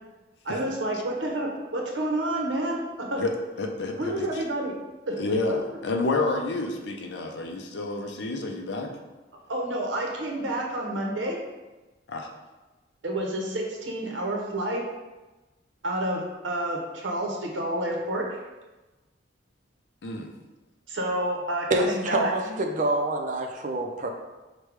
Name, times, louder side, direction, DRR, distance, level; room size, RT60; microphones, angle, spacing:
voice 1, 0.4-3.2 4.0-4.8 5.1-5.2 5.5-5.6 9.5-11.4 13.0-14.9 15.8-18.4 20.9-22.3, right 1 dB, 75° right, 0 dB, 0.7 m, -29 dB
voice 2, 3.6-4.3 5.2-8.9 12.1-12.3 20.0-20.3, left 3 dB, 60° left, 2 dB, 0.5 m, -29 dB
voice 3, 21.7-24.1, right 1 dB, 40° right, 3 dB, 0.5 m, -26 dB
4.8 x 2.2 x 4.7 m, 1.1 s
head